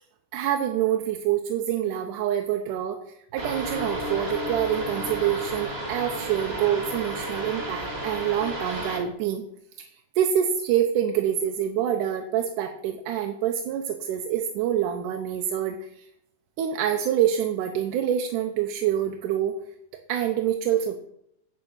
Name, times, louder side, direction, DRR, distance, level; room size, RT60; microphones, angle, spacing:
voice 1, 0.3-3.0 3.3-9.4 9.8-9.9 10.2-16.1 16.6-19.5 20.1-21.0, right 10 dB, 80° right, 4 dB, 2.3 m, -26 dB
sound 1, 3.4-9.0, right 1 dB, 20° right, 1.9 m, -32 dB
9.7 x 5.6 x 7.9 m, 0.75 s
omnidirectional pair, 3.6 m